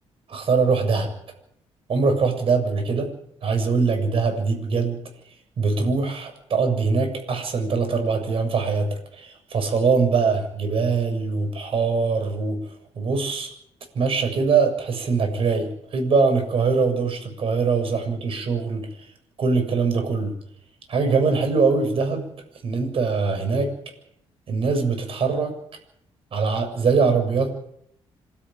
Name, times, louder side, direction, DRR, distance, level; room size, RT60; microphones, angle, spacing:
voice 1, 0.3-1.1 1.9-3.1 3.4-5.0 5.6-12.6 13.0-13.5 13.9-19.1 19.4-20.4 20.9-22.3 22.6-23.7 24.5-25.5 26.3-27.5, right 4 dB, 55° right, 6 dB, 7.3 m, -22 dB
26.5 x 13.5 x 9.3 m, 0.72 s
cardioid pair, 105°, 11 cm